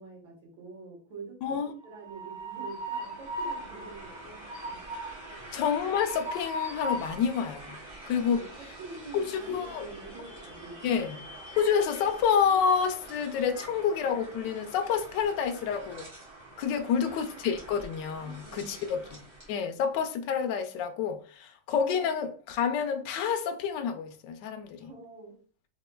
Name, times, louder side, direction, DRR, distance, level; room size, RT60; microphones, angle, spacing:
voice 1, 0.0-1.6 1.8-4.8 5.3-5.5 8.2-11.0 16.6-17.1 18.1-19.1 24.8-25.4, right 3 dB, 65° right, 2.1 m, -47 dB
voice 2, 1.4-1.7 5.5-7.8 8.1-8.4 9.1-9.9 10.8-11.2 11.6-16.1 16.6-19.2 19.5-24.9, left 7 dB, 75° left, 1.1 m, -28 dB
Train, 1.8-19.6, right 1 dB, 30° right, 1.3 m, -42 dB
4.2 x 3.2 x 2.2 m
omnidirectional pair, 2.3 m